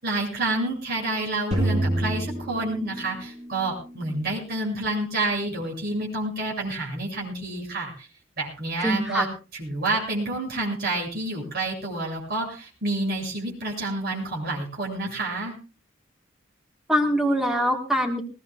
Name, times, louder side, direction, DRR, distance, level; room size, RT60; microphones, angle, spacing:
voice 1, 0.0-8.1 8.4-9.3 9.5-15.5, right 2 dB, 50° right, -3 dB, 7.4 m, -29 dB
sound 1, 1.5-3.7, right 1 dB, 35° right, 6.7 m, -27 dB
voice 2, 8.8-9.3 16.9-18.2, equal, 5° right, 2 dB, 1.5 m, -23 dB
20.5 x 20.0 x 2.4 m, 0.33 s
head